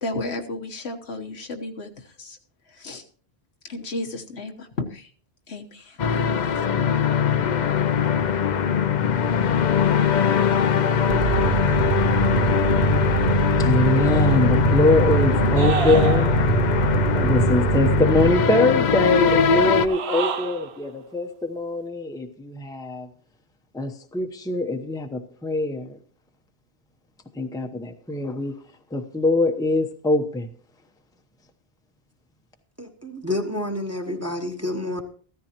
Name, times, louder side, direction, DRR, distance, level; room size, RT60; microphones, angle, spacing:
voice 1, 0.0-2.4 2.7-3.0 3.6-5.1 5.5-6.6, left 2 dB, 80° left, 4 dB, 1.5 m, -33 dB
sound 1, 6.0-19.9, left 7 dB, 50° left, 0.7 m, -21 dB
sound 2, 11.1-18.4, right 10 dB, 55° right, 0.7 m, -24 dB
voice 2, 13.6-16.3 17.1-23.1 23.7-26.0 27.3-28.6 28.9-30.5, left 2 dB, 5° left, 5 dB, 0.8 m, -23 dB
sound 3, 15.6-16.7 19.8-20.8, right 8 dB, 75° right, 1.0 m, -28 dB
voice 3, 32.8-35.0, left 1 dB, 15° right, 4 dB, 1.2 m, -29 dB
15.0 x 13.5 x 2.9 m, 0.44 s
omnidirectional pair, 1.1 m